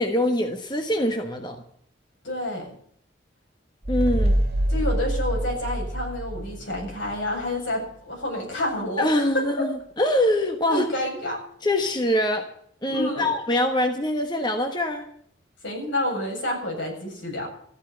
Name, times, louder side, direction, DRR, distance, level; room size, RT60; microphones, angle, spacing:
voice 1, 0.0-1.6 3.9-4.4 9.0-10.8 11.6-12.5 12.8-15.1, left 1 dB, 25° left, 5 dB, 1.3 m, -24 dB
voice 2, 2.2-2.8 4.7-9.4 10.7-11.4 12.9-13.3 15.6-17.5, left 1 dB, 85° left, 0 dB, 7.7 m, -29 dB
sound 1, 3.8-7.2, right 1 dB, 55° right, 2.0 m, -25 dB
14.0 x 10.5 x 9.2 m, 0.63 s
head